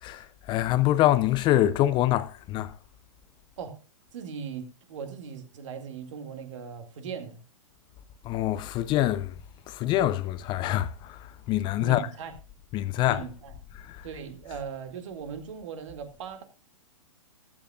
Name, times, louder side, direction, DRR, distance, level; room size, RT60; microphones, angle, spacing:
voice 1, 0.0-2.7 8.2-9.4 9.7-12.1 12.7-13.2 13.8-14.1, left 14 dB, 25° left, 0.5 m, -25 dB
voice 2, 4.1-7.4 11.8-12.3 13.1-13.5 14.0-16.4, right 6 dB, 60° right, 2.2 m, -39 dB
14.5 x 12.0 x 2.4 m
hypercardioid pair, 120°, 18 cm